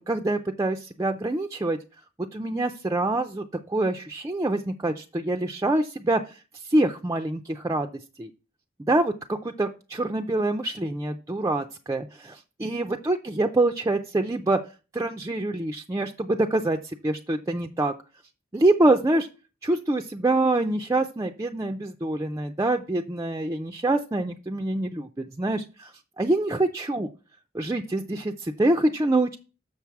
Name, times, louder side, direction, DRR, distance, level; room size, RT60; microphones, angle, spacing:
voice 1, 0.1-1.8 2.3-7.9 8.2-8.3 8.9-14.6 14.9-17.9 18.5-19.3 19.6-27.1 27.5-29.4, right 2 dB, 15° right, 4 dB, 0.4 m, -25 dB
7.0 x 6.6 x 4.7 m, 0.33 s
head